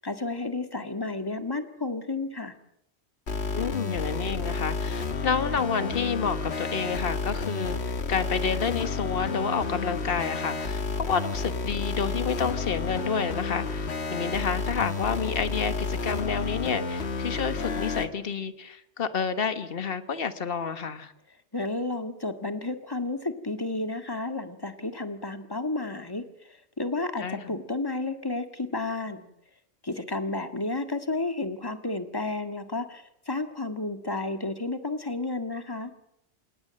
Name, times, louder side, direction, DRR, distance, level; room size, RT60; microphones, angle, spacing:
voice 1, 0.0-2.5 21.5-29.3 29.8-35.9, left 2 dB, 20° left, 7 dB, 1.8 m, -32 dB
sound 1, 3.3-18.1, left 4 dB, 75° left, 1.7 m, -31 dB
voice 2, 3.5-21.1 27.2-27.5, left 6 dB, 60° left, 11 dB, 1.5 m, -29 dB
28.5 x 17.5 x 7.7 m, 0.78 s
omnidirectional pair, 1.1 m